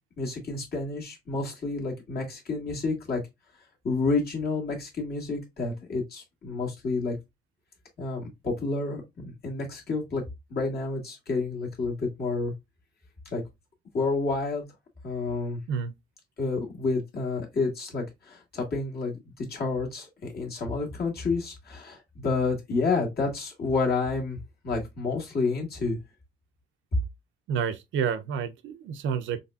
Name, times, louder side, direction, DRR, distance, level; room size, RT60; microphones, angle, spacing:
voice 1, 0.2-3.2 3.8-7.2 8.0-10.2 10.5-12.5 13.3-13.4 13.9-14.6 15.0-15.6 16.4-24.4 24.6-26.0, left 3 dB, 50° left, 1.8 m, -29 dB
voice 2, 27.5-29.4, right 7 dB, 75° right, 0.6 m, -29 dB
4.1 x 3.2 x 2.3 m
cardioid pair, 90°, 20 cm